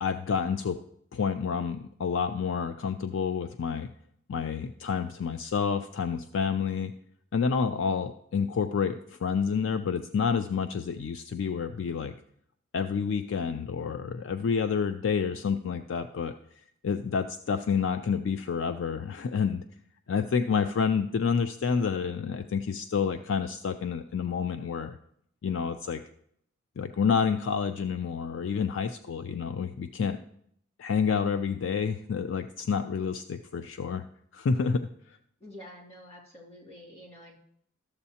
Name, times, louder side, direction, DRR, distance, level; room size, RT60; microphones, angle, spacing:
voice 1, 0.0-0.8 1.1-3.9 4.3-6.9 7.3-12.1 12.7-16.3 16.8-19.6 20.1-25.0 25.4-26.0 26.8-30.2 30.8-34.1 34.3-35.2, left 6 dB, 70° left, 9 dB, 0.4 m, -29 dB
voice 2, 35.4-37.4, left 1 dB, 35° left, -3 dB, 2.6 m, -48 dB
13.0 x 7.0 x 2.8 m, 0.70 s
head